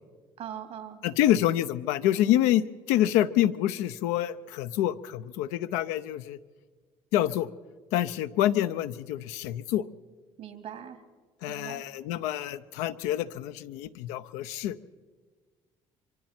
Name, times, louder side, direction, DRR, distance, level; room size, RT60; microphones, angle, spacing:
voice 1, 0.4-1.0 10.4-11.0 11.5-11.8, right 9 dB, 70° right, 6 dB, 2.6 m, -41 dB
voice 2, 1.0-6.4 7.1-7.5 7.9-9.9 11.4-14.8, left 12 dB, 85° left, 11 dB, 0.7 m, -27 dB
25.0 x 24.5 x 4.4 m, 1.4 s
supercardioid pair, 75°, 12 cm